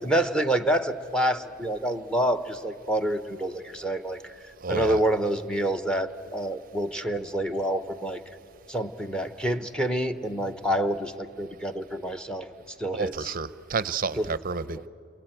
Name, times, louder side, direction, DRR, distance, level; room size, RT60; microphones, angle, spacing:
voice 1, 0.0-4.3 4.7-8.2 8.7-12.5 12.8-13.3 14.2-14.3, right 1 dB, 5° left, 9 dB, 0.8 m, -27 dB
voice 2, 4.6-5.0 12.9-14.9, right 4 dB, 40° right, 16 dB, 0.5 m, -30 dB
29.0 x 23.0 x 9.0 m, 2.6 s
head